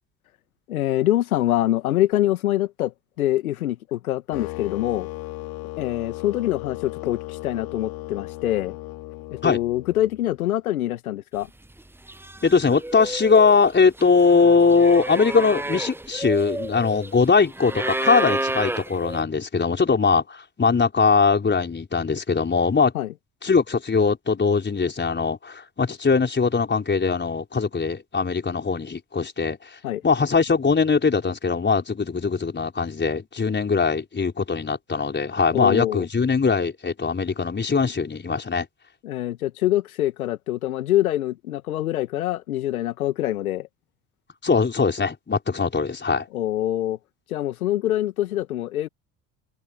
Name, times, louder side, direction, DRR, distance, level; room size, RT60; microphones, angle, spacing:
voice 1, 0.7-5.1 5.8-8.8 9.3-11.5 22.9-23.1 29.8-30.0 35.5-36.1 39.0-43.7 46.3-47.0 47.3-48.9, left 14 dB, 80° left, 1.7 m, -25 dB
sound 1, 4.3-10.4, left 19 dB, 55° left, 2.6 m, -36 dB
sound 2, 11.6-11.8 12.1-19.2, right 1 dB, 5° right, 1.1 m, -30 dB
voice 2, 12.4-22.9 23.4-29.6 30.0-38.7 44.4-46.3, left 5 dB, 25° left, 4.9 m, -21 dB
open air
figure-of-eight pair, 60°, 42 cm